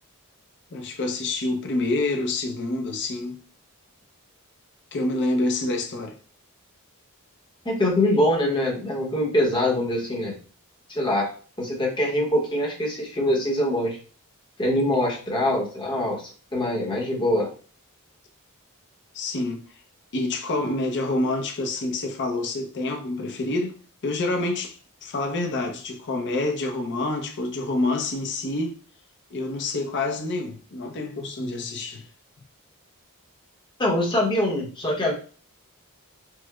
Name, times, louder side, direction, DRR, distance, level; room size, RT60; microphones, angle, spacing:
voice 1, 0.7-3.4 4.9-6.2 19.1-19.6 20.1-23.7 24.0-28.8 29.3-32.0, left 2 dB, 55° left, 0.6 m, -27 dB
voice 2, 7.6-10.4 10.9-11.3 11.6-14.0 14.6-17.5 33.8-35.1, left 1 dB, 20° left, 0.9 m, -23 dB
4.6 x 2.1 x 2.3 m
head